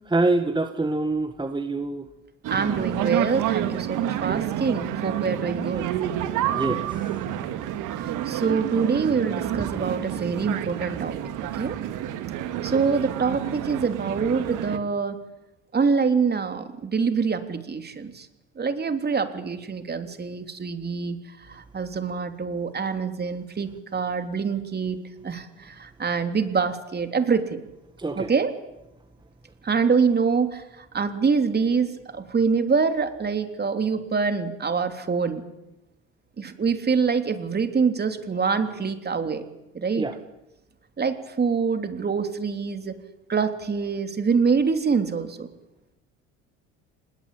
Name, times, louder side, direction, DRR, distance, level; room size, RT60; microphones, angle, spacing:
voice 1, 0.1-2.1 6.5-6.9 9.5-9.7 28.0-28.3 40.0-40.2, right 2 dB, 15° right, 8 dB, 1.8 m, -25 dB
sound 1, 2.4-14.8, right 11 dB, 60° right, 2.5 m, -29 dB
voice 2, 2.5-5.9 8.3-11.1 11.5-11.8 12.6-15.2 15.7-18.3 18.6-21.2 21.5-27.6 28.2-28.5 29.6-35.4 36.4-39.4 39.7-40.1 41.0-43.0 43.3-45.5, right 5 dB, 30° right, 8 dB, 3.4 m, -25 dB
26.5 x 20.5 x 8.7 m, 0.95 s
hypercardioid pair, 70°, 34 cm